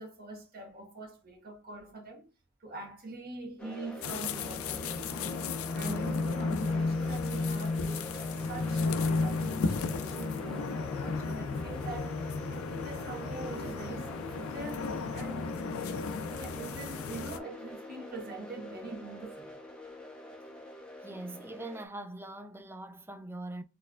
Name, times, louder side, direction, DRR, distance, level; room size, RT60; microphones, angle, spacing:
voice 1, 0.0-2.3 2.6-5.4 5.7-8.1 8.5-19.6, right 3 dB, 45° right, 1.3 m, -44 dB
sound 1, 3.6-21.8, left 1 dB, 5° left, 0.8 m, -45 dB
sound 2, 4.0-17.4, left 4 dB, 85° left, 0.4 m, -33 dB
voice 2, 21.0-23.6, right 1 dB, 10° right, 0.4 m, -42 dB
4.2 x 3.2 x 2.4 m
head